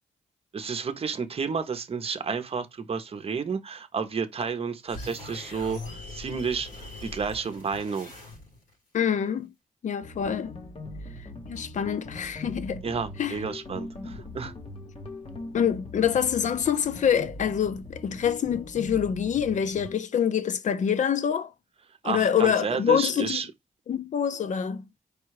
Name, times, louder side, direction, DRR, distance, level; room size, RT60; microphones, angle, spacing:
voice 1, 0.5-8.1 12.8-14.5 22.0-23.5, right 5 dB, 45° right, 0.7 m, -31 dB
sound 1, 4.9-8.7, left 2 dB, 85° left, 3.5 m, -41 dB
voice 2, 8.9-9.5 9.8-10.6 11.5-12.8 13.2-13.4 15.5-21.5 22.0-23.4 23.9-24.9, left 8 dB, 60° left, 0.5 m, -26 dB
sound 2, 10.0-20.0, left 2 dB, 40° left, 1.1 m, -41 dB
4.9 x 2.3 x 4.7 m
wide cardioid pair, 115°, 14 cm